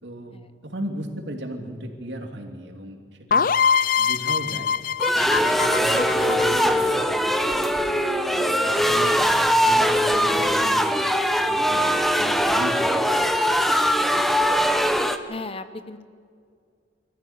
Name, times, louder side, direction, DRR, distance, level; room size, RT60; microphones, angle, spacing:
voice 1, 0.0-3.0 3.3-3.5 4.0-4.7 5.1-13.2 14.0-14.2 14.6-15.0, right 1 dB, 80° right, 4 dB, 2.8 m, -37 dB
sound 1, 3.3-7.0, left 6 dB, 50° left, 0.5 m, -23 dB
sound 2, 5.0-15.2, equal, ahead, 0.9 m, -21 dB
voice 2, 15.3-16.0, left 3 dB, 35° left, 12 dB, 0.9 m, -37 dB
24.0 x 14.0 x 8.9 m, 2.2 s
head